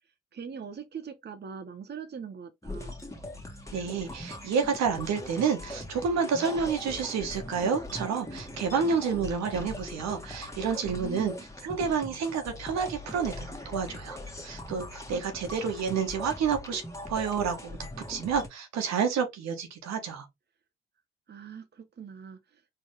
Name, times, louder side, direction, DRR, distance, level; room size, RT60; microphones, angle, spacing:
voice 1, 0.3-3.0 10.8-11.4 21.3-22.7, right 6 dB, 35° right, 0.9 m, -42 dB
sound 1, 2.6-18.5, left 1 dB, 10° left, 1.6 m, -41 dB
voice 2, 3.7-11.3 11.6-14.2 14.4-16.8 17.1-17.8 18.1-20.3, right 6 dB, 65° right, 1.3 m, -29 dB
4.5 x 3.1 x 3.1 m
hypercardioid pair, 45°, 29 cm